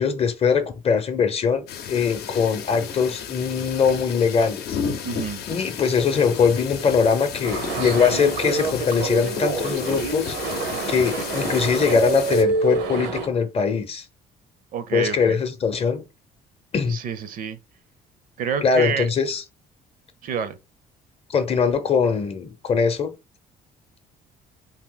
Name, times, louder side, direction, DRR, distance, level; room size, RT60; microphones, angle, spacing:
voice 1, 0.0-4.8 5.5-10.3 10.9-14.1 14.9-16.0 16.7-17.0 18.6-19.4 21.3-23.1, left 6 dB, 35° left, 0.6 m, -22 dB
sound 1, 1.7-12.4, left 7 dB, 70° left, 0.7 m, -33 dB
voice 2, 5.0-5.4 14.7-15.4 16.9-17.6 18.4-19.1 20.2-20.6, right 7 dB, 55° right, 0.5 m, -28 dB
sound 2, 7.4-13.3, right 4 dB, 85° right, 0.8 m, -27 dB
2.8 x 2.7 x 3.8 m
cardioid pair, 110°, 17 cm